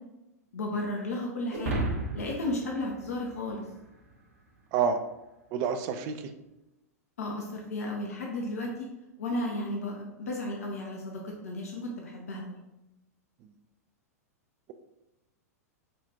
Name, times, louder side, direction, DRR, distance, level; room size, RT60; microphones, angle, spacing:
voice 1, 0.5-1.9 2.1-3.7 7.2-8.9 9.2-12.6, left 1 dB, 65° left, 0 dB, 0.6 m, -34 dB
sound 1, 1.5-4.0, right 2 dB, 60° right, 0.8 m, -34 dB
voice 2, 5.5-6.3, right 6 dB, 35° right, 9 dB, 0.4 m, -28 dB
5.0 x 2.4 x 2.7 m, 0.96 s
figure-of-eight pair, 95°, 9 cm